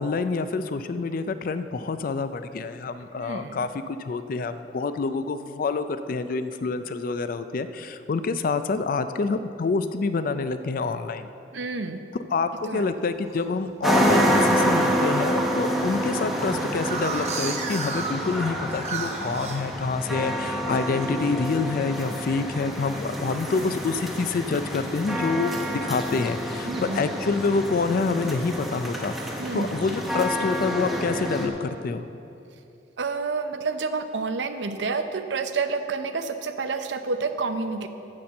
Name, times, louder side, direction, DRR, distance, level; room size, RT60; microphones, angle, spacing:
voice 1, 0.0-11.3 12.3-25.5 25.8-32.1, left 4 dB, 50° left, 11 dB, 0.4 m, -27 dB
voice 2, 3.2-3.6 11.5-12.0 12.7-12.8 26.7-27.0 29.4-29.8 33.0-37.9, right 4 dB, 80° right, 8 dB, 0.6 m, -29 dB
sound 1, 12.7-13.4 14.0-14.4 14.8-14.9 15.1-15.2 15.5-20.3 20.7-21.1 21.4-21.8 22.1-23.0 23.5-24.0, right 4 dB, 40° right, 0.8 m, -35 dB
sound 2, 13.8-31.5, equal, ahead, 0.9 m, -27 dB
12.5 x 4.3 x 7.4 m, 2.7 s
head